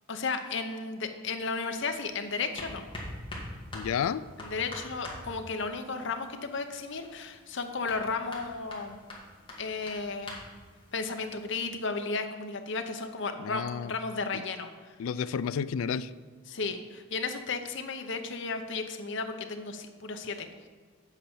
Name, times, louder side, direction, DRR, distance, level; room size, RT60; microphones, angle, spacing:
voice 1, 0.1-2.8 4.4-9.0 9.6-10.4 10.9-14.9 16.5-20.5, left 4 dB, 60° left, 7 dB, 0.8 m, -34 dB
sound 1, 1.7-11.5, left 1 dB, 25° left, 2.1 m, -45 dB
voice 2, 3.7-4.2 13.4-13.9 15.0-16.1, left 7 dB, 80° left, 16 dB, 0.3 m, -31 dB
8.2 x 5.8 x 7.1 m, 1.5 s
head